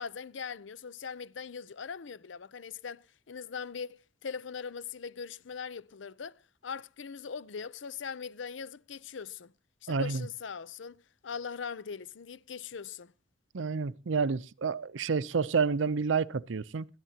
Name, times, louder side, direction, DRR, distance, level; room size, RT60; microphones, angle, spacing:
voice 1, 0.0-6.3 6.6-9.5 9.8-13.1, left 6 dB, 70° left, 0.6 m, -41 dB
voice 2, 9.9-10.3 13.5-16.9, right 5 dB, 70° right, 0.6 m, -29 dB
20.0 x 13.0 x 2.8 m
head